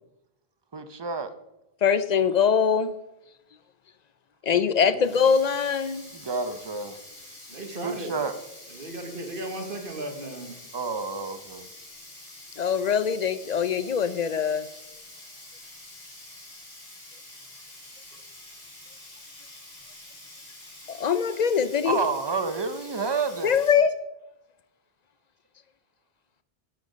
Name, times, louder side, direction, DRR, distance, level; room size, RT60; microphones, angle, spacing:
voice 1, 0.7-1.3 6.1-7.0 7.8-8.4 10.7-11.7 21.8-23.6, right 4 dB, 30° right, 0.5 m, -29 dB
voice 2, 1.8-3.0 4.4-6.1 12.6-14.7 20.9-22.0 23.4-23.9, left 7 dB, 55° left, 0.5 m, -23 dB
voice 3, 4.5-5.2 7.5-8.2 8.7-10.6, right 1 dB, 60° right, 1.4 m, -36 dB
Sink (filling or washing), 5.0-23.7, left 1 dB, 80° left, 3.0 m, -47 dB
8.5 x 8.2 x 5.0 m
omnidirectional pair, 1.0 m